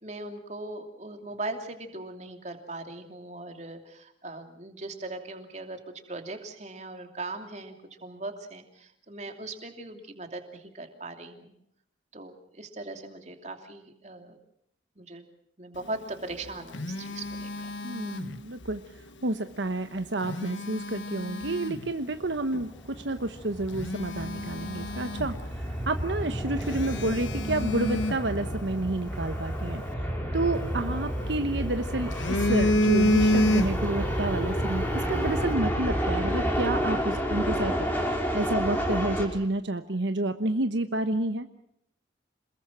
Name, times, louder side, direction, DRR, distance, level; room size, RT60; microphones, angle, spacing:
voice 1, 0.0-5.8 6.1-11.5 12.1-14.4 15.0-15.2 15.6-17.7, right 2 dB, 35° right, 5 dB, 2.9 m, -39 dB
Telephone, 16.2-18.8 20.0-21.9 22.5-22.7 23.2-23.3 23.7-25.7 26.0-26.1 26.6-29.0 30.6-31.5 31.9-34.1 34.4-34.6, left 1 dB, 85° left, 1.4 m, -29 dB
voice 2, 17.8-18.8 19.2-29.8 30.3-41.5, right 2 dB, 75° right, 8 dB, 1.1 m, -30 dB
sound 1, 22.1-39.3, equal, 10° left, 4.6 m, -30 dB
27.5 x 21.5 x 6.1 m, 0.74 s
head